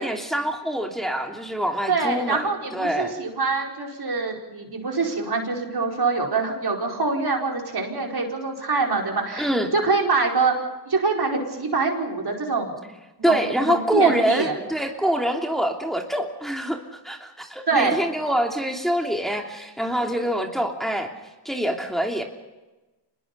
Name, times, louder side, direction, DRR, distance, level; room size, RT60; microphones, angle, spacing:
voice 1, 0.0-3.1 9.4-9.7 13.2-21.1 21.4-22.2, equal, ahead, 1 dB, 3.0 m, -25 dB
voice 2, 1.9-10.5 10.8-12.7 13.2-14.6 17.7-18.0, right 4 dB, 60° right, 0 dB, 4.9 m, -24 dB
26.0 x 20.5 x 5.5 m, 1.1 s
cardioid pair, 50°, 43 cm